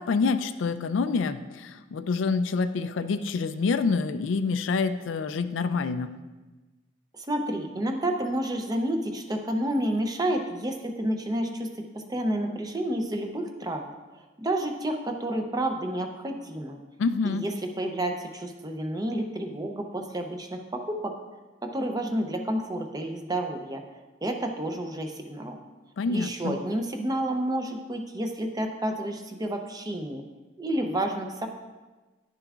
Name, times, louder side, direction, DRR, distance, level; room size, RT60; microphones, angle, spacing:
voice 1, 0.0-6.1 17.0-17.4 26.0-26.6, left 4 dB, 75° left, 11 dB, 0.4 m, -27 dB
voice 2, 7.1-11.7 11.9-13.8 14.2-16.8 17.2-17.5 17.8-21.1 21.6-23.8 24.2-25.6 26.1-30.2 30.6-31.5, right 1 dB, 20° right, 4 dB, 0.6 m, -30 dB
10.5 x 6.7 x 2.4 m, 1.2 s
head